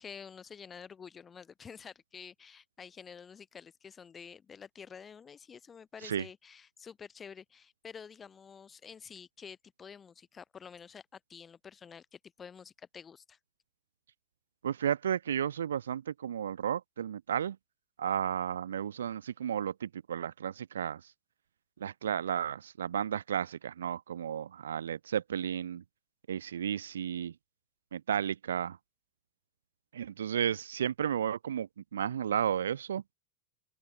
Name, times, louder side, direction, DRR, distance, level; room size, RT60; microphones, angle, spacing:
voice 1, 0.0-13.4, left 6 dB, 20° left, 4.6 m, -49 dB
voice 2, 14.6-17.6 18.0-21.0 21.8-25.8 26.3-27.3 27.9-28.8 29.9-33.0, right 9 dB, 65° right, 1.2 m, -33 dB
open air
figure-of-eight pair, 90°, 0 cm